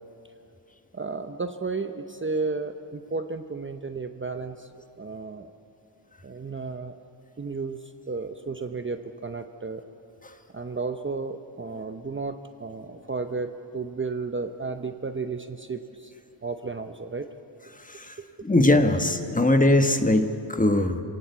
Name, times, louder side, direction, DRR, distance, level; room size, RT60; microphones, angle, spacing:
voice 1, 0.9-4.7 5.0-5.5 6.2-7.0 7.4-9.8 10.5-16.1 16.4-17.3, right 4 dB, 25° right, 7 dB, 0.8 m, -33 dB
voice 2, 18.4-21.0, left 1 dB, 15° left, 7 dB, 1.4 m, -21 dB
26.0 x 17.5 x 8.2 m, 3.0 s
wide cardioid pair, 110°, 46 cm